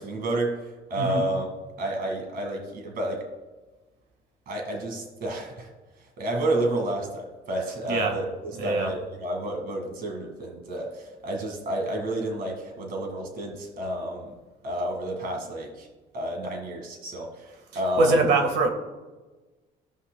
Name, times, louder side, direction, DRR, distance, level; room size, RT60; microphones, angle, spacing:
voice 1, 0.0-1.5 1.8-3.3 4.5-5.7 6.2-14.3 14.6-15.9 16.1-18.3, right 1 dB, 65° right, 2 dB, 2.0 m, -30 dB
voice 2, 7.9-8.2 8.5-8.9 17.7-18.7, right 3 dB, 85° right, 4 dB, 1.6 m, -23 dB
16.0 x 5.5 x 2.2 m, 1.2 s
cardioid pair, 110°, 17 cm